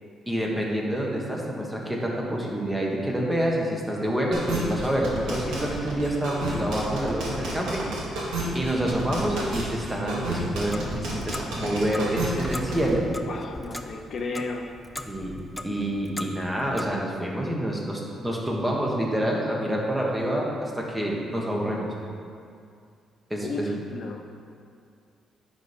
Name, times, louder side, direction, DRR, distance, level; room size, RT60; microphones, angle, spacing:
voice 1, 0.3-7.9 8.5-13.1 15.1-21.9 23.3-23.8, right 1 dB, 10° right, -2 dB, 1.4 m, -27 dB
sound 1, 4.3-12.9, right 2 dB, 90° right, 1.9 m, -31 dB
Clock, 10.5-16.9, left 1 dB, 10° left, 0.5 m, -39 dB
voice 2, 13.2-14.7 23.4-24.2, left 3 dB, 55° left, 3 dB, 0.6 m, -34 dB
10.5 x 4.2 x 5.1 m, 2.3 s
cardioid pair, 100°, 0 cm